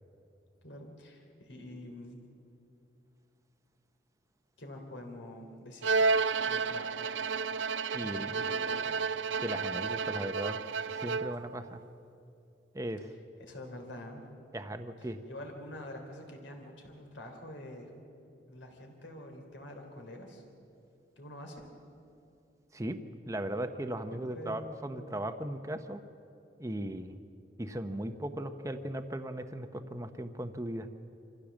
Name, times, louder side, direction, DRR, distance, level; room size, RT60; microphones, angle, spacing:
voice 1, 0.6-2.2 4.6-6.0 6.4-7.1 8.0-9.0 13.4-14.2 15.0-17.9 18.5-20.4 21.2-21.6 24.1-25.1, left 1 dB, 80° left, 3 dB, 3.3 m, -46 dB
Bowed string instrument, 5.8-11.5, right 4 dB, 85° right, 0.5 m, -31 dB
voice 2, 7.9-8.3 9.4-10.6 10.9-11.8 12.7-13.1 14.5-15.2 22.7-23.0 23.3-26.0 26.6-27.2 27.6-30.9, right 1 dB, 15° right, 7 dB, 0.7 m, -37 dB
25.0 x 15.0 x 7.3 m, 2.6 s
head